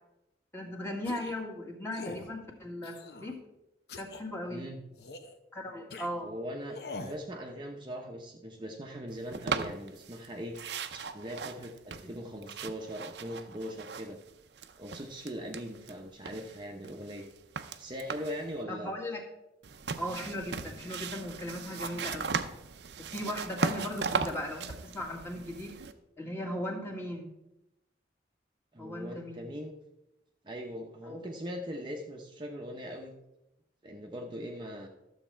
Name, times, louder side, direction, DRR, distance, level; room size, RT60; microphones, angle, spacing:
voice 1, 0.5-3.4 3.9-4.6 5.5-6.3 18.7-19.2 20.0-22.4 23.0-25.7 26.2-27.3 28.8-29.5 31.0-31.3, left 1 dB, 15° left, 0 dB, 1.7 m, -37 dB
sound 1, 1.0-1.4 1.9-2.3 2.8-3.4 3.9-4.2 5.0-5.3 5.9-6.1 6.7-7.2, left 3 dB, 60° left, 0.8 m, -43 dB
voice 2, 4.5-4.8 6.2-10.6 10.9-14.2 14.8-17.3 17.8-18.9 28.7-29.8 30.4-33.1 33.8-34.9, equal, 25° right, 1 dB, 0.8 m, -40 dB
sound 2, 9.3-10.3 10.5-14.3 14.5-15.9 16.3-18.5 19.6-25.9, right 5 dB, 70° right, 0.6 m, -37 dB
12.0 x 7.3 x 4.5 m, 0.91 s
head